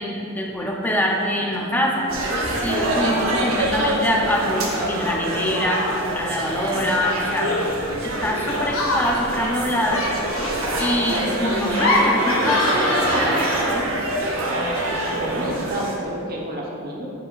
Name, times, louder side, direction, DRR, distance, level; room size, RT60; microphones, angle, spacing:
voice 1, 0.0-2.1 2.6-7.6 8.0-10.0 10.8-13.9, equal, 10° left, -1 dB, 0.6 m, -24 dB
Laughter, 0.8-1.3 1.5-2.2 2.6-3.4 4.7-6.2 6.9-13.8, left 1 dB, 85° left, 1.0 m, -27 dB
sound 1, 2.1-15.9, right 1 dB, 85° right, 0.9 m, -25 dB
voice 2, 15.1-17.1, right 1 dB, 45° right, -3 dB, 1.0 m, -30 dB
7.9 x 4.9 x 2.4 m, 2.7 s
head